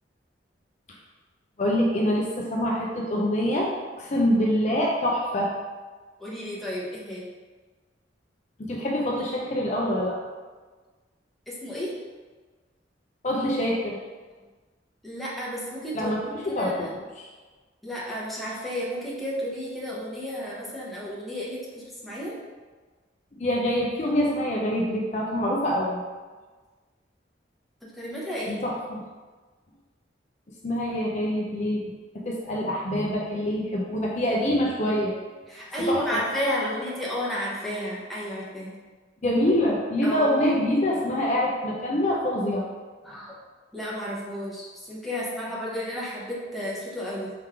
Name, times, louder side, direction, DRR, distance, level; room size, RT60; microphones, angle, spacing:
voice 1, 1.6-3.7 4.0-5.5 8.6-10.2 13.2-14.0 15.9-16.9 23.4-26.0 28.5-29.0 30.6-31.8 32.2-35.1 35.9-36.2 39.2-42.6, equal, 40° left, -2 dB, 0.5 m, -25 dB
voice 2, 6.2-7.2 11.5-11.9 15.0-16.9 17.8-22.4 28.0-28.6 35.5-38.8 40.0-40.3 43.0-43.3 43.7-47.3, equal, ahead, -6 dB, 0.9 m, -32 dB
4.8 x 3.1 x 3.5 m, 1.4 s
head